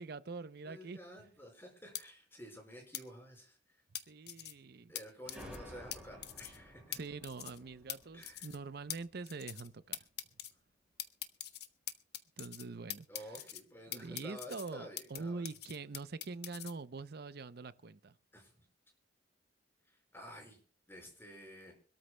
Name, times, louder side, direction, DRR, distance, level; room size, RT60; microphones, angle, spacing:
voice 1, 0.0-1.0 4.1-4.9 6.9-10.0 12.4-13.4 13.9-18.1, right 4 dB, 60° right, 0.6 m, -44 dB
voice 2, 0.6-3.8 4.9-6.8 8.1-8.5 13.1-15.5 18.3-18.6 19.9-20.6 20.9-21.7, equal, 15° left, 4.9 m, -51 dB
sound 1, 1.9-2.0 2.9-3.0 3.9-4.5 4.9-5.0 5.3-5.6 5.9-6.0 6.2-6.6 6.9-7.0 7.2-7.6 7.9-8.0 8.2-8.6 8.9-9.0 9.3-9.7 9.9-10.5 11.0-12.6 12.9-13.6 13.9-15.2 15.4-16.7, left 12 dB, 65° left, 0.9 m, -43 dB
sound 2, 5.2-9.7, equal, 5° right, 4.7 m, -54 dB
25.5 x 13.0 x 2.2 m
head